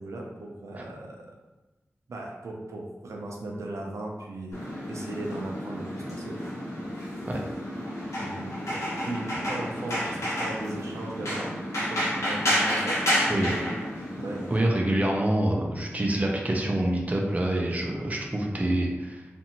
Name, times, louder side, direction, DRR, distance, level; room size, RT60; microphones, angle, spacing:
voice 1, 0.0-1.3 2.1-6.4 8.2-13.0 13.4-13.7 14.2-14.4, right 2 dB, 85° right, 0 dB, 0.5 m, -37 dB
sound 1, 4.5-14.6, equal, 80° left, 1.0 m, -30 dB
voice 2, 14.5-19.3, right 1 dB, 30° right, -1 dB, 0.5 m, -26 dB
2.5 x 2.5 x 2.9 m, 1.1 s
cardioid pair, 45°, 5 cm